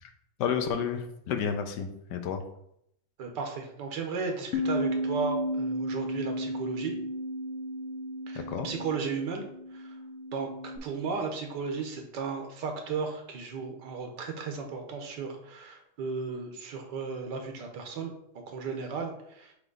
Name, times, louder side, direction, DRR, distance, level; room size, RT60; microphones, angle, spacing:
voice 1, 0.4-2.4 8.3-8.7, left 7 dB, 80° left, 7 dB, 1.3 m, -31 dB
voice 2, 3.2-6.9 8.3-9.4 9.7-9.9 10.3-10.5 10.8-18.1 18.5-19.5, right 5 dB, 85° right, 3 dB, 1.7 m, -35 dB
Bass guitar, 4.5-10.8, equal, 65° left, 0.9 m, -33 dB
7.9 x 3.2 x 3.9 m, 0.74 s
omnidirectional pair, 1.8 m